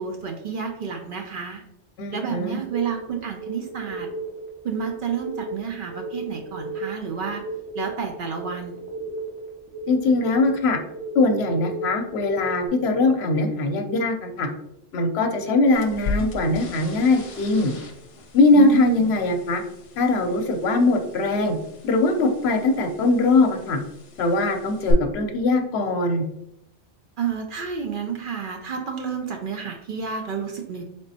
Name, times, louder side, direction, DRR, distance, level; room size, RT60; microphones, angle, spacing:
voice 1, 0.0-1.6 2.1-4.1 4.6-7.4 7.7-8.8 18.6-19.0 27.2-30.8, right 6 dB, 60° right, 3 dB, 0.6 m, -30 dB
voice 2, 2.0-2.6 9.9-10.8 11.1-14.5 14.9-17.7 18.3-19.6 20.0-21.6 21.8-23.8 24.2-26.2, left 2 dB, 70° left, 5 dB, 0.8 m, -21 dB
sound 1, 2.7-12.7, right 2 dB, 75° right, 1.2 m, -35 dB
sound 2, 15.7-24.9, left 3 dB, 55° left, 0.3 m, -38 dB
4.0 x 3.5 x 2.7 m, 0.81 s
omnidirectional pair, 1.2 m